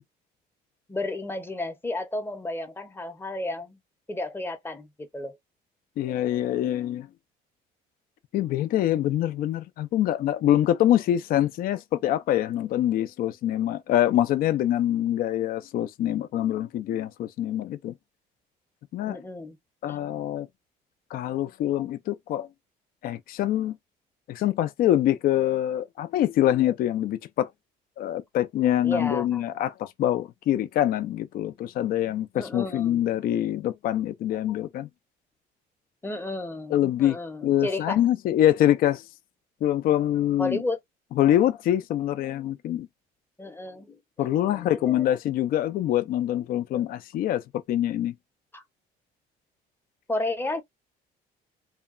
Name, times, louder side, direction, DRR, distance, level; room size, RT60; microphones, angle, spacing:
voice 1, 0.9-3.8 4.1-5.4 19.1-19.6 19.9-20.0 28.8-29.4 32.3-33.0 36.0-38.0 40.4-40.8 43.4-45.0 48.5-48.6 50.1-50.6, left 2 dB, 15° left, 0.7 m, -32 dB
voice 2, 6.0-7.1 8.3-17.9 18.9-19.2 19.8-20.5 21.1-22.5 23.0-23.7 24.3-27.5 28.0-34.9 36.7-37.2 37.4-39.0 39.6-40.6 41.2-42.9 44.2-47.4 47.7-48.1, left 12 dB, 60° left, 0.4 m, -25 dB
2.8 x 2.2 x 2.4 m
cardioid pair, 110°, 17 cm